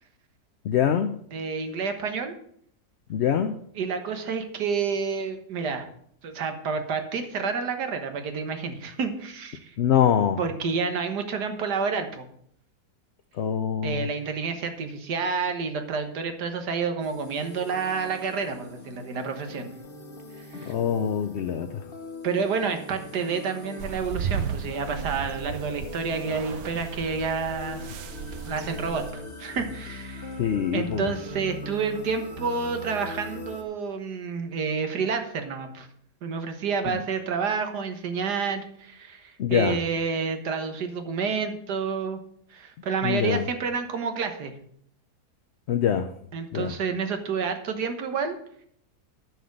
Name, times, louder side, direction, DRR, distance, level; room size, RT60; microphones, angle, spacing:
voice 1, 0.6-1.2 3.1-3.5 9.8-10.4 13.4-14.1 20.7-21.8 30.4-31.1 36.9-37.0 39.4-39.8 43.0-43.4 45.7-46.1 46.5-46.7, left 8 dB, 60° left, 7 dB, 0.7 m, -24 dB
voice 2, 1.3-2.3 3.8-5.9 6.2-9.7 10.4-12.3 13.8-19.7 20.4-20.7 22.2-27.9 28.5-30.4 30.7-35.9 36.2-42.2 42.5-44.5 46.3-48.4, right 5 dB, 90° right, 7 dB, 1.9 m, -29 dB
sound 1, 17.0-33.6, left 2 dB, 40° left, 1.3 m, -41 dB
sound 2, 23.8-29.1, right 8 dB, 70° right, 1.1 m, -35 dB
9.5 x 5.9 x 7.7 m, 0.65 s
omnidirectional pair, 1.7 m